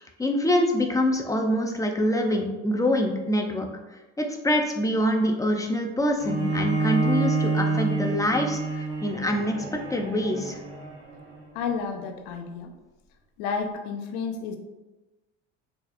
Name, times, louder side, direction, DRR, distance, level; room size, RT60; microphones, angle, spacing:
voice 1, 0.0-3.7 4.2-9.6 9.9-10.6, left 1 dB, 10° left, 3 dB, 0.4 m, -25 dB
Bowed string instrument, 6.2-11.4, right 3 dB, 40° right, 1.5 m, -28 dB
voice 2, 11.5-12.7 13.4-14.6, left 5 dB, 70° left, 5 dB, 0.6 m, -31 dB
4.1 x 2.5 x 2.5 m, 1.1 s
hypercardioid pair, 70°, 35 cm